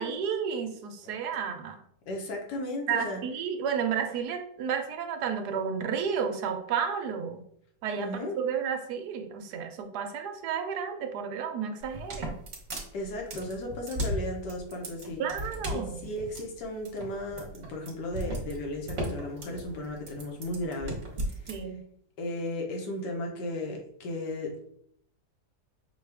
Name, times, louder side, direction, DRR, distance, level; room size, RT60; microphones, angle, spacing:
voice 1, 0.0-1.8 2.9-7.4 7.8-8.1 8.4-12.4 15.2-16.0 21.5-21.8, right 7 dB, 75° right, 6 dB, 1.2 m, -32 dB
voice 2, 2.1-3.2 8.0-8.4 12.9-15.2 15.7-21.0 21.3-21.4 22.2-24.7, left 1 dB, 85° left, 1 dB, 1.5 m, -35 dB
sound 1, 11.8-21.6, equal, 45° right, 1.2 m, -36 dB
5.6 x 2.3 x 3.3 m, 0.68 s
omnidirectional pair, 1.8 m